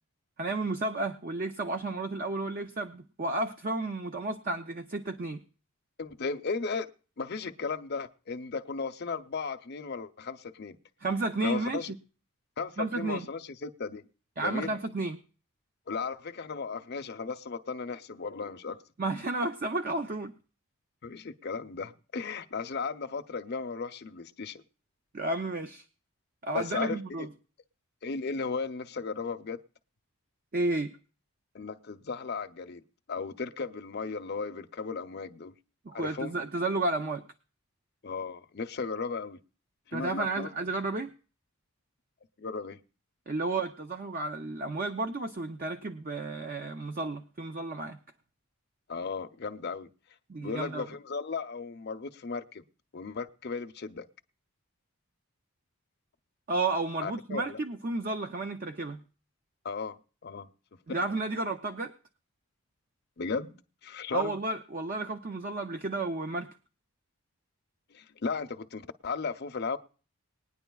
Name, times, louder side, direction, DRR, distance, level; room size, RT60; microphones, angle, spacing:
voice 1, 0.4-5.4 11.0-11.9 12.8-13.3 14.4-15.2 19.0-20.3 25.1-25.8 26.4-27.3 30.5-30.9 35.8-37.2 39.9-41.1 43.3-48.0 50.3-50.9 56.5-59.0 60.9-61.9 64.1-66.5, right 2 dB, 40° right, 0.6 m, -32 dB
voice 2, 6.0-6.9 7.2-10.8 11.4-11.9 12.6-14.0 14.4-14.7 15.9-18.8 21.0-24.6 26.5-27.3 28.0-29.6 31.5-32.8 33.1-35.5 35.9-36.4 38.0-39.4 39.9-40.5 42.4-42.8 48.9-49.9 50.4-52.7 52.9-54.1 57.0-57.6 59.6-60.5 60.9-61.1 63.2-63.5 63.8-64.4 67.9-69.8, left 4 dB, 50° left, 0.6 m, -35 dB
20.5 x 9.8 x 2.3 m
head